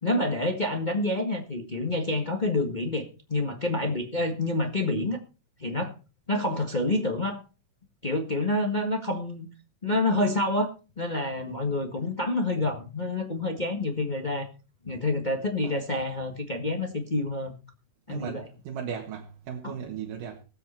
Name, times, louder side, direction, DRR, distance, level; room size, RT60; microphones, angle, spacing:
voice 1, 0.0-5.2 5.6-5.9 6.3-7.4 8.0-9.5 9.8-10.7 11.0-14.4 14.8-17.5 18.1-18.5 19.6-19.7, left 2 dB, 30° left, 0.7 m, -28 dB
voice 2, 18.1-20.4, right 7 dB, 80° right, 3.3 m, -37 dB
20.5 x 8.1 x 4.3 m
omnidirectional pair, 3.8 m